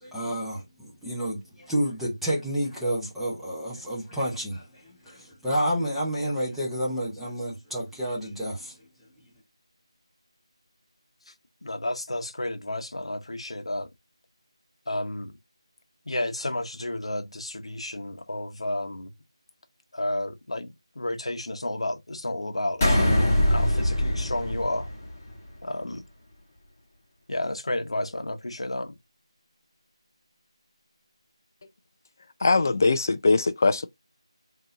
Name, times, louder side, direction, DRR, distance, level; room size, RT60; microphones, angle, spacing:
voice 1, 0.0-8.8, equal, ahead, 0.7 m, -30 dB
voice 2, 11.6-13.9 14.9-15.3 16.1-19.1 19.9-24.9 25.6-26.0 27.3-29.0, left 1 dB, 75° left, 0.9 m, -31 dB
sound 1, 22.8-25.4, left 1 dB, 15° left, 1.2 m, -23 dB
voice 3, 32.4-33.9, left 3 dB, 35° left, 0.4 m, -21 dB
3.7 x 2.7 x 3.8 m
figure-of-eight pair, 170°, 3 cm